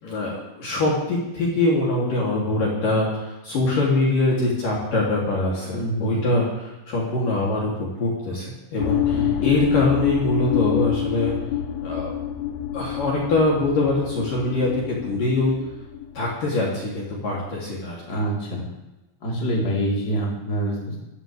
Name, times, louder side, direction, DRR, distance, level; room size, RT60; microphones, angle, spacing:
voice 1, 0.0-11.3 11.8-12.1 12.7-15.5 16.1-18.0, left 2 dB, 45° left, -5 dB, 4.5 m, -23 dB
voice 2, 5.7-6.3 9.1-9.4 18.1-18.6 19.2-21.0, right 1 dB, 20° left, -4 dB, 4.3 m, -26 dB
sound 1, 8.8-16.3, left 11 dB, 90° left, 3.5 m, -27 dB
24.0 x 15.5 x 3.6 m, 1.0 s
omnidirectional pair, 5.5 m